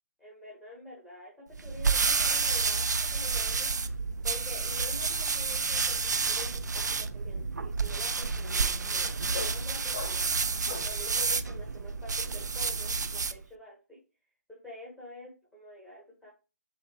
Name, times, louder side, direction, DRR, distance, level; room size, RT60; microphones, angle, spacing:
voice 1, 0.2-4.0 4.2-6.0 6.3-10.3 10.8-14.0 14.5-16.3, left 2 dB, ahead, -5 dB, 1.1 m, -47 dB
sound 1, 1.5-13.4, right 4 dB, 85° right, 0.4 m, -30 dB
sound 2, 4.8-11.1, left 5 dB, 35° left, 0.8 m, -45 dB
6.2 x 2.8 x 2.8 m, 0.31 s
figure-of-eight pair, 150°, 9 cm